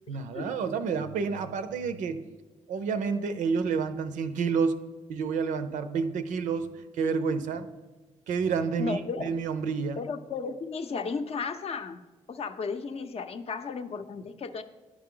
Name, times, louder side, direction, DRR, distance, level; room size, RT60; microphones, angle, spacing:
voice 1, 0.1-2.2 2.7-7.7 8.3-10.0, right 5 dB, 90° right, 10 dB, 0.5 m, -29 dB
voice 2, 8.8-9.3 10.0-12.0 12.3-14.6, left 5 dB, 50° left, 9 dB, 0.5 m, -34 dB
10.5 x 4.8 x 3.8 m, 1.2 s
cardioid pair, 75°, 13 cm